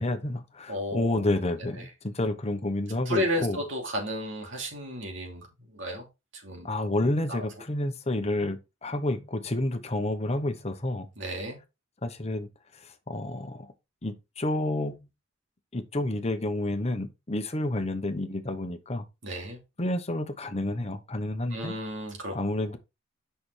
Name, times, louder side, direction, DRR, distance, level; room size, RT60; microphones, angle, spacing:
voice 1, 0.0-3.6 6.6-11.1 12.0-12.5 12.8-13.7 14.0-15.0 15.7-19.0 19.8-21.7 22.3-22.8, left 1 dB, 30° left, 1.0 m, -30 dB
voice 2, 0.7-1.2 1.8-1.9 3.1-6.1 6.3-6.7 7.3-7.4 11.2-11.6 19.2-19.6 21.5-22.3, equal, 65° right, 2.8 m, -33 dB
6.7 x 5.7 x 3.3 m
head